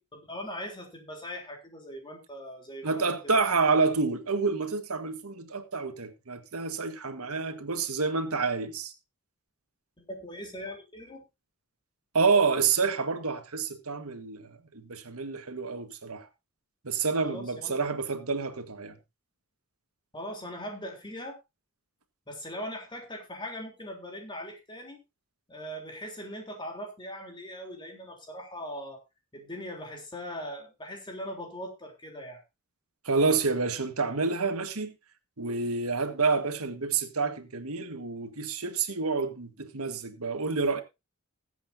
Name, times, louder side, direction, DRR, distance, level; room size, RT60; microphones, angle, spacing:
voice 1, 0.1-3.4 10.0-11.2 17.2-17.8 20.1-21.4 22.3-25.0 25.5-29.0 29.3-32.4, equal, 20° left, 3.5 m, -40 dB
voice 2, 2.8-8.9 12.1-16.3 16.8-19.0 33.0-34.9 35.4-40.8, right 4 dB, 85° right, 1.6 m, -28 dB
20.5 x 8.2 x 2.7 m
head